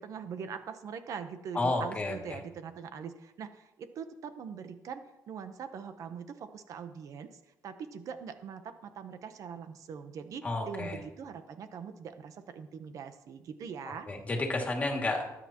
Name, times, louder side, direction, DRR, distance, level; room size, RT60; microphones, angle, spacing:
voice 1, 0.0-14.1, right 6 dB, 60° right, 9 dB, 0.8 m, -42 dB
voice 2, 1.5-2.4 10.4-11.0 14.1-15.2, left 2 dB, 20° left, 1 dB, 2.2 m, -31 dB
19.0 x 9.6 x 2.9 m, 0.96 s
cardioid pair, 135°, 6 cm